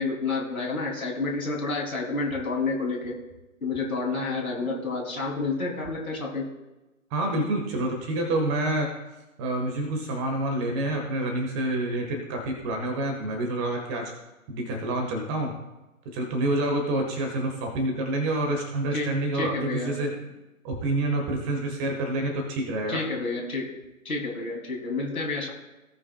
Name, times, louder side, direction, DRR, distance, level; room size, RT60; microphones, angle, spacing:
voice 1, 0.0-3.2 3.6-6.5 18.9-19.9 22.9-23.7 24.1-25.5, left 3 dB, 75° left, -2 dB, 3.5 m, -29 dB
voice 2, 7.1-8.9 9.4-14.1 14.5-15.5 16.1-20.1 20.6-23.0, right 1 dB, 20° right, 2 dB, 1.7 m, -27 dB
17.5 x 6.2 x 2.4 m, 1.0 s
figure-of-eight pair, 135°, 43 cm